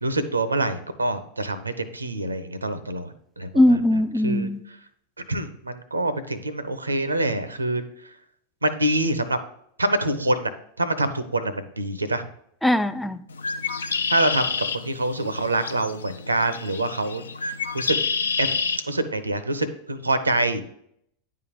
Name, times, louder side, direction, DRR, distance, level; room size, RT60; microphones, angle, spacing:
voice 1, 0.0-3.8 4.2-4.5 5.3-7.8 8.6-9.4 9.8-10.5 10.8-12.3 13.8-18.0 18.4-18.5 18.9-20.6, right 2 dB, 80° right, 13 dB, 0.6 m, -26 dB
voice 2, 3.5-4.6 12.6-13.2, left 1 dB, 5° left, 10 dB, 0.3 m, -20 dB
Bird, 13.3-18.8, left 5 dB, 70° left, 0.4 m, -29 dB
9.7 x 3.7 x 5.2 m, 0.70 s
figure-of-eight pair, 90°, 0 cm